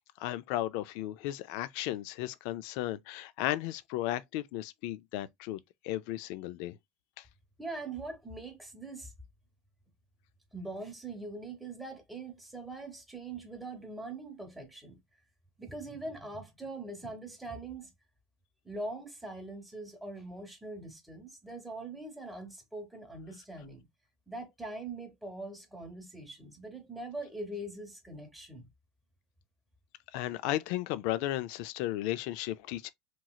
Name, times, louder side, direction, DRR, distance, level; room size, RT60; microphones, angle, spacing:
voice 1, 0.2-6.8 30.1-32.9, left 14 dB, 65° left, 0.3 m, -35 dB
voice 2, 7.6-9.1 10.5-15.0 15.6-17.9 18.6-23.9 24.3-28.7, right 2 dB, 5° right, 0.9 m, -42 dB
3.0 x 2.7 x 2.3 m
supercardioid pair, 135°, 0 cm